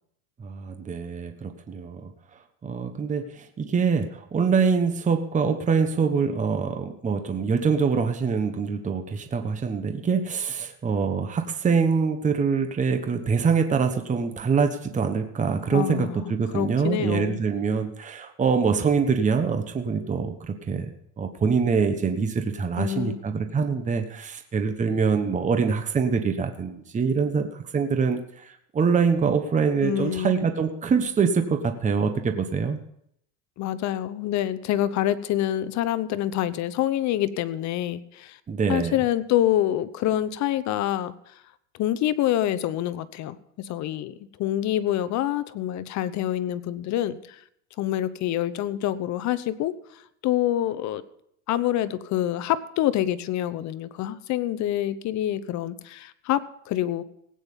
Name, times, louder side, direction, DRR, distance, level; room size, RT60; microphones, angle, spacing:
voice 1, 0.4-2.1 2.6-20.9 21.2-32.8 38.5-39.0, right 5 dB, 15° right, 7 dB, 1.1 m, -24 dB
voice 2, 15.7-17.4 22.8-23.2 29.8-30.4 33.6-38.4 38.7-41.1 41.8-47.4 47.8-51.0 51.5-57.0, left 12 dB, 40° left, 15 dB, 0.8 m, -26 dB
17.5 x 9.0 x 5.4 m, 0.73 s
supercardioid pair, 130°, 42 cm